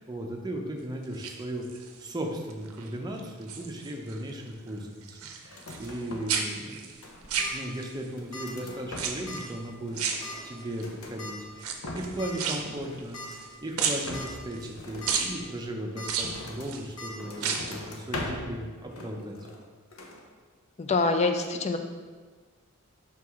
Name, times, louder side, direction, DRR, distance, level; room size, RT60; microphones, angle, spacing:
voice 1, 0.0-19.5, right 1 dB, 20° right, 2 dB, 0.6 m, -37 dB
sound 1, 1.0-2.0 2.5-2.9 3.2-4.2 4.5-6.0 6.3-8.1 8.9-9.5 9.9-10.8 11.5-13.5 13.8-14.7 15.1-15.3 16.0-16.8 17.3-17.8 18.1-18.2, right 6 dB, 80° right, 0.6 m, -32 dB
sound 2, 5.5-6.4 6.7-7.5 8.0-9.4 9.7-11.2 11.6-12.3 12.6-13.6 14.0-16.8 17.2-18.6 18.9-19.7 19.9-20.2, left 2 dB, 80° left, 0.8 m, -42 dB
sound 3, 7.1-7.5 8.3-8.6 8.8-8.9 9.3-9.4 10.2-10.5 11.2-11.3 12.2-12.3 12.8-12.9 13.1-13.3 13.9-14.3 14.7-15.1 16.0-16.1 17.0-17.1, left 2 dB, 65° left, 1.4 m, -40 dB
voice 2, 20.8-21.8, left 3 dB, 30° left, 6 dB, 0.4 m, -25 dB
5.9 x 4.6 x 3.6 m, 1.5 s
head